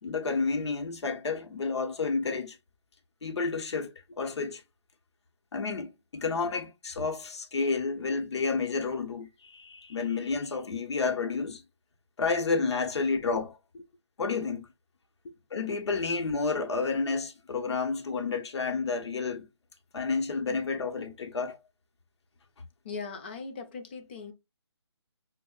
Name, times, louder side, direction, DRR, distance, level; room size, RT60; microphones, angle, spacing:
voice 1, 0.0-2.6 3.2-4.6 5.5-11.6 12.2-13.6 14.2-14.7 15.5-19.5 19.9-21.6, left 4 dB, 70° left, 0.7 m, -30 dB
voice 2, 22.8-24.3, left 4 dB, 20° left, 0.4 m, -39 dB
5.5 x 2.0 x 2.2 m
figure-of-eight pair, 150°, 15 cm